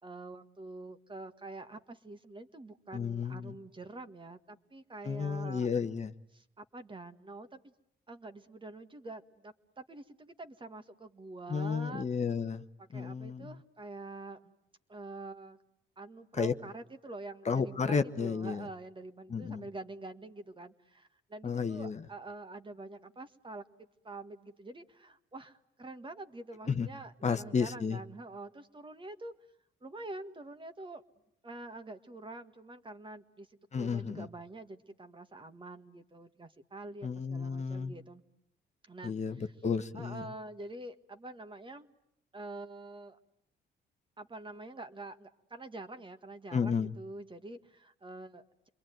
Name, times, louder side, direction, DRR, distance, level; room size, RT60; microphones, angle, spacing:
voice 1, 0.0-5.7 6.3-7.7 8.1-12.1 12.9-14.4 14.9-15.6 16.0-23.6 24.0-29.3 29.8-31.0 31.4-38.2 38.9-39.5 39.9-41.9 42.3-43.2 44.2-48.7, right 2 dB, 25° right, 8 dB, 1.7 m, -46 dB
voice 2, 2.9-3.5 5.0-6.1 11.5-12.6 12.9-13.5 16.3-16.5 17.4-18.7 19.3-19.6 21.4-22.0 26.7-26.9 27.2-28.0 33.7-34.3 37.0-37.9 39.0-40.2 46.5-46.9, left 5 dB, 35° left, 8 dB, 1.1 m, -32 dB
28.0 x 22.5 x 9.2 m, 0.76 s
cardioid pair, 90°, 20 cm